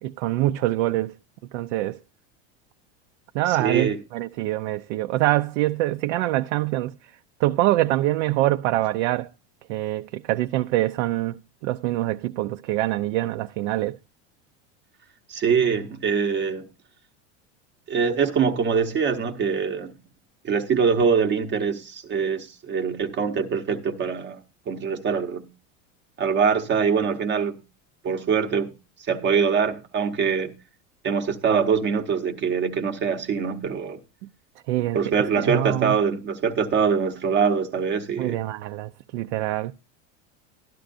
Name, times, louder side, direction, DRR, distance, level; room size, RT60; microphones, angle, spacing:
voice 1, 0.0-1.1 1.5-2.0 3.3-6.9 7.4-9.3 9.7-11.4 11.6-14.0 34.7-35.9 38.2-39.7, right 16 dB, 70° right, 0.6 m, -25 dB
voice 2, 3.5-4.0 15.3-16.7 17.9-19.9 20.4-24.4 24.7-25.4 26.2-27.6 28.0-28.7 29.1-30.5 31.0-34.0 34.8-38.4, right 6 dB, 30° right, 0.9 m, -23 dB
12.5 x 11.5 x 2.5 m
supercardioid pair, 150°, 36 cm